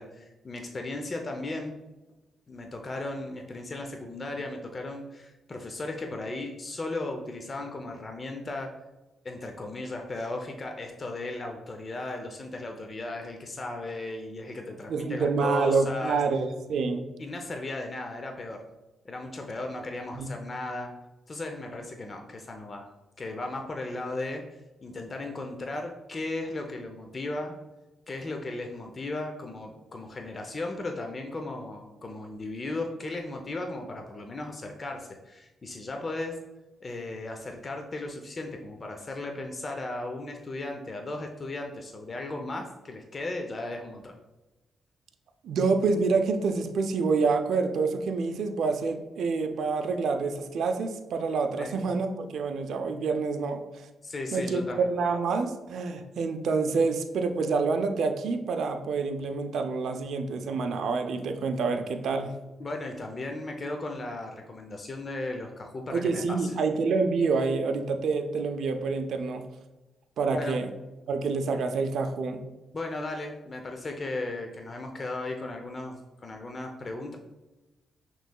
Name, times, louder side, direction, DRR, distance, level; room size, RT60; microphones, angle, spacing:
voice 1, 0.0-1.8 2.5-8.7 9.2-16.2 17.2-18.6 19.0-20.9 21.3-22.9 23.2-24.4 24.8-27.5 28.1-36.4 36.8-44.1 51.6-51.7 54.0-54.9 62.6-66.5 70.3-70.6 72.7-77.2, left 2 dB, 40° left, 3 dB, 0.6 m, -36 dB
voice 2, 14.9-17.1 20.1-20.3 45.4-53.9 54.3-62.4 65.9-69.4 70.2-70.7 71.1-72.4, right 4 dB, 75° right, 6 dB, 0.4 m, -27 dB
6.1 x 3.1 x 2.3 m, 1.1 s
supercardioid pair, 60°, 0 cm